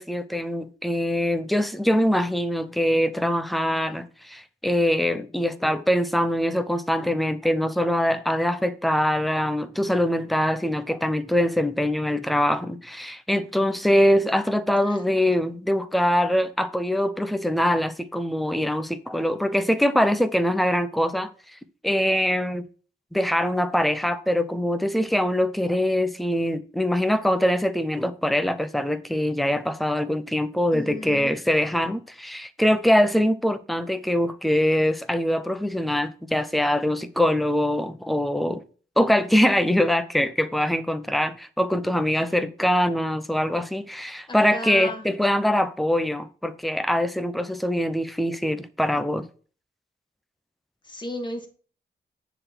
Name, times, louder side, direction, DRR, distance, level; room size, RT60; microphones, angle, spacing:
voice 1, 0.0-21.3 21.8-22.6 23.1-38.6 39.0-49.2, equal, ahead, 0.6 m, -23 dB
voice 2, 30.7-31.3 44.3-45.0 50.8-51.5, left 1 dB, 25° left, 1.8 m, -34 dB
9.8 x 4.0 x 6.0 m
wide cardioid pair, 155°, 19 cm